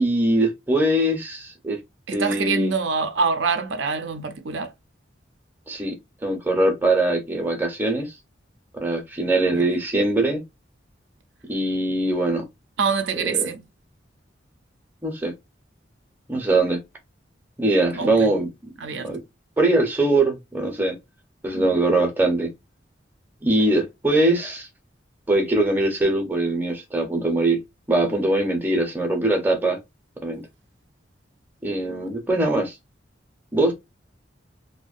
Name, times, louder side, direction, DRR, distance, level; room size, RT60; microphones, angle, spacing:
voice 1, 0.0-1.8 2.1-2.7 5.7-6.0 6.2-8.1 8.8-10.4 11.5-12.4 13.2-13.5 15.0-15.3 16.3-16.8 17.6-18.5 18.9-19.2 19.6-21.0 21.4-22.5 23.4-24.7 25.3-27.6 27.9-29.8 30.2-30.4 31.6-32.7 33.5-33.7, right 2 dB, 10° right, 0.6 m, -22 dB
voice 2, 2.1-4.7 9.5-9.7 12.8-13.6 18.0-18.4 18.8-19.1 21.5-21.6, right 5 dB, 80° right, 0.5 m, -25 dB
2.5 x 2.1 x 2.4 m
head